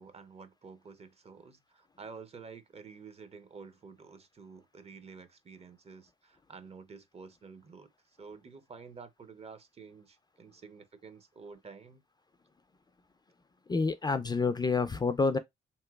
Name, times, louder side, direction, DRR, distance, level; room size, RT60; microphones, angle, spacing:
voice 1, 0.0-7.9 8.2-12.0, right 5 dB, 30° right, 0.5 m, -50 dB
voice 2, 13.7-15.4, left 4 dB, 20° left, 0.3 m, -28 dB
3.1 x 3.0 x 2.2 m
cardioid pair, 90°, 20 cm